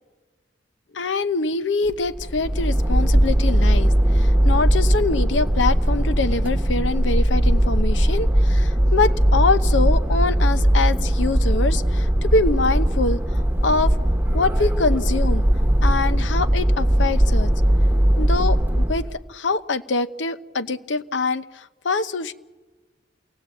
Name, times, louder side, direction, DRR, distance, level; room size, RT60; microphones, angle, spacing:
voice 1, 0.9-13.9 14.3-15.4 15.8-17.5 18.2-22.3, left 3 dB, 85° left, 12 dB, 0.8 m, -24 dB
sound 1, 1.9-19.1, right 1 dB, 10° right, 1.1 m, -19 dB
27.5 x 18.0 x 8.2 m, 1.3 s
head